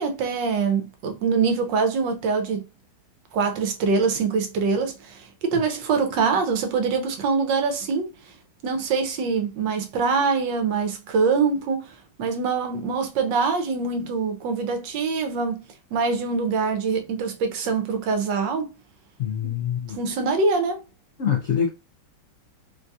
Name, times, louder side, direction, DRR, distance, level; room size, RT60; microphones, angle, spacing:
voice 1, 0.0-2.6 3.3-8.1 8.6-15.6 15.9-18.7 19.4-19.6 19.9-20.8, right 4 dB, 80° right, 1.4 m, -24 dB
voice 2, 19.2-20.0 21.2-21.7, left 8 dB, 80° left, 0.6 m, -24 dB
3.8 x 2.3 x 2.6 m
omnidirectional pair, 1.9 m